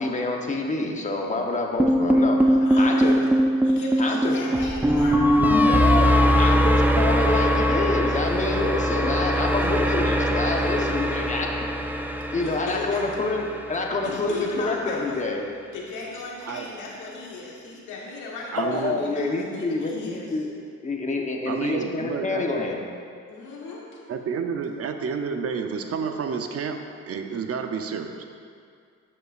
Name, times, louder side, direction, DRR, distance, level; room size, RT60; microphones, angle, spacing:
voice 1, 0.0-3.2 4.0-4.4 5.3-11.5 12.3-15.5 18.6-20.5 20.8-22.8, left 2 dB, 25° left, 1 dB, 1.0 m, -27 dB
sound 1, 1.8-14.0, equal, 5° right, 0.4 m, -21 dB
voice 2, 2.6-3.2 3.6-5.2 10.7-11.1 12.4-13.2 14.0-15.3 15.7-20.3 23.3-23.9, left 3 dB, 85° left, -3 dB, 1.4 m, -37 dB
voice 3, 18.5-19.0 21.5-22.6 24.1-26.8 27.1-28.2, right 5 dB, 50° right, 5 dB, 0.6 m, -30 dB
12.5 x 5.4 x 2.5 m, 2.2 s
cardioid pair, 90°, 30 cm